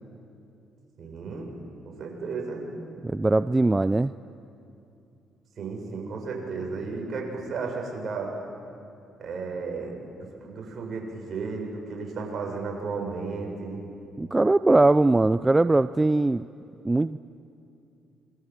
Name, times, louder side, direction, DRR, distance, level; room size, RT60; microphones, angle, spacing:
voice 1, 1.0-1.5 1.8-2.7 5.6-8.3 9.2-13.8, right 4 dB, 55° right, 1 dB, 7.4 m, -34 dB
voice 2, 3.0-4.1 14.2-16.4 16.8-17.2, right 2 dB, 20° right, 13 dB, 0.6 m, -21 dB
27.0 x 22.5 x 7.8 m, 2.7 s
supercardioid pair, 60°, 0 cm